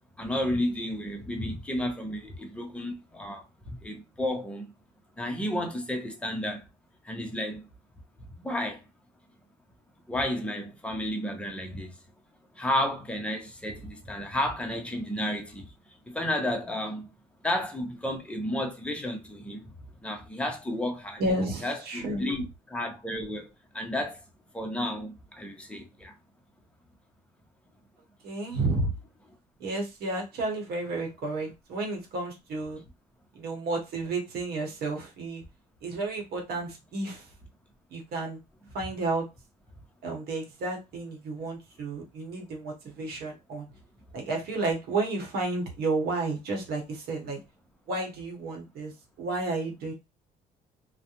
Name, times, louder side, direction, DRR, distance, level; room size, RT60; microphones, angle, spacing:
voice 1, 0.2-3.4 3.8-4.7 5.2-6.6 7.0-7.7 8.4-8.8 10.1-11.9 12.6-15.7 16.1-17.1 17.4-19.6 20.0-21.2 21.6-23.5 23.7-24.2 24.5-26.1, left 1 dB, 5° left, 0.7 m, -32 dB
voice 2, 21.2-22.2 28.2-28.9 29.6-32.8 33.3-35.4 35.8-37.3 37.9-38.4 38.7-39.3 40.0-43.7 44.1-47.4 47.9-49.9, right 2 dB, 70° right, 1.0 m, -31 dB
2.4 x 2.1 x 2.9 m
cardioid pair, 110°, 17 cm